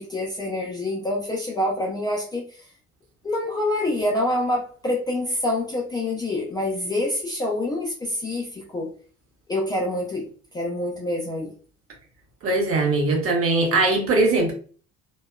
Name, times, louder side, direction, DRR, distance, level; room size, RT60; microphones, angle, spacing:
voice 1, 0.0-2.5 3.2-8.9 9.5-10.3 10.5-11.5, left 1 dB, 10° left, -4 dB, 0.4 m, -26 dB
voice 2, 12.4-14.5, right 2 dB, 30° right, 2 dB, 0.9 m, -20 dB
2.7 x 2.2 x 2.2 m, 0.41 s
figure-of-eight pair, 60°, 42 cm